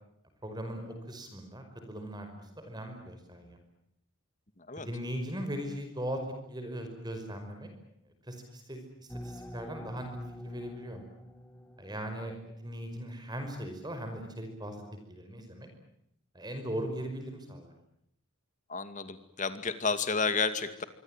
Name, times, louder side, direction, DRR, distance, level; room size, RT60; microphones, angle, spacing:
voice 1, 0.4-3.6 4.8-6.2 6.5-7.7 8.1-10.2 10.4-11.0 11.8-14.8 15.1-15.7 16.3-17.7, equal, 20° right, 6 dB, 5.3 m, -39 dB
sound 1, 9.1-12.6, equal, 5° left, 2.5 m, -45 dB
voice 2, 18.7-20.8, left 4 dB, 35° left, 11 dB, 2.3 m, -31 dB
25.5 x 25.0 x 9.1 m, 0.75 s
head